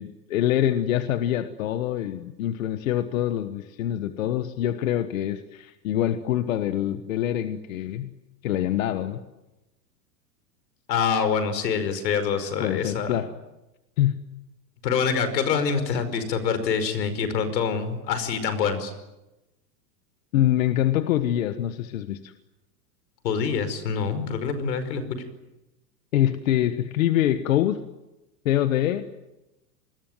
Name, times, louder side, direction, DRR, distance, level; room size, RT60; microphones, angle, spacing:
voice 1, 0.0-8.1 8.4-9.2 12.6-13.3 14.0-14.2 20.3-22.3 26.1-27.8 28.4-29.0, left 12 dB, 50° left, 10 dB, 1.4 m, -25 dB
voice 2, 10.9-13.2 14.8-18.9 23.2-25.0, left 6 dB, 80° left, 11 dB, 5.2 m, -25 dB
28.0 x 21.0 x 9.2 m, 0.98 s
supercardioid pair, 180°, 50 cm